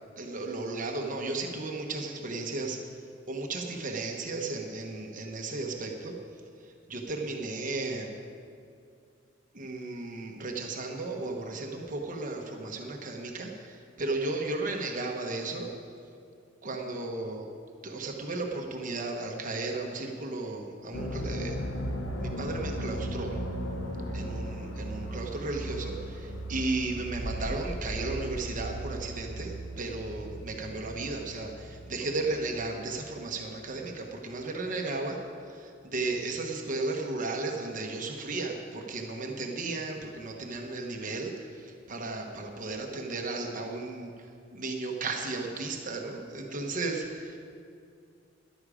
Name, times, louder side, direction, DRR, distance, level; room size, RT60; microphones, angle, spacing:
voice 1, 0.2-2.8 3.3-6.2 6.6-8.1 9.5-15.7 16.6-17.5 17.8-21.6 22.2-23.4 24.1-35.2 35.5-44.1 44.5-47.4, right 3 dB, 45° right, 2 dB, 1.0 m, -34 dB
sound 1, 20.9-33.3, right 1 dB, 75° left, 1.3 m, -37 dB
13.5 x 11.0 x 5.0 m, 2.4 s
head